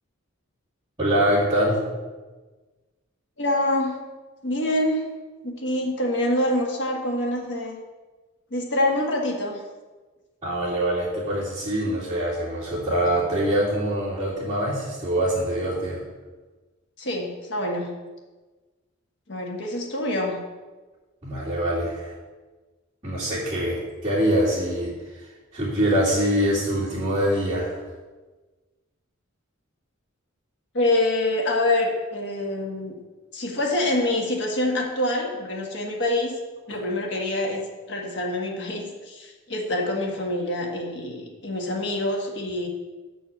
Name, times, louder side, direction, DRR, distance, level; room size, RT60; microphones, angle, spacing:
voice 1, 1.0-1.8 10.4-16.0 21.2-22.1 23.0-24.9 25.5-27.8, right 1 dB, 25° right, -12 dB, 2.5 m, -24 dB
voice 2, 3.4-4.0 4.4-5.1 5.4-7.8 8.5-9.6 17.0-17.9 19.3-20.4 30.7-32.9 33.3-36.3 36.7-37.6 37.9-42.7, left 1 dB, 60° left, 0 dB, 1.5 m, -26 dB
8.3 x 4.5 x 7.0 m, 1.3 s
head